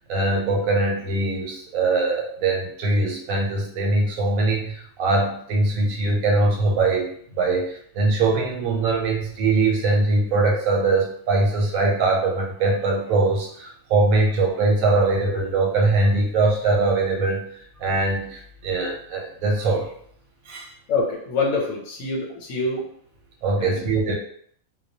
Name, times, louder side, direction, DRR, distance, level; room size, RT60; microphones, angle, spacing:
voice 1, 0.1-7.1 7.4-19.9 20.5-20.7 23.4-24.2, right 3 dB, 90° right, 0 dB, 1.1 m, -22 dB
voice 2, 20.9-22.9 23.6-23.7, left 3 dB, 85° left, 0 dB, 1.1 m, -25 dB
2.2 x 2.2 x 2.7 m, 0.62 s
omnidirectional pair, 1.4 m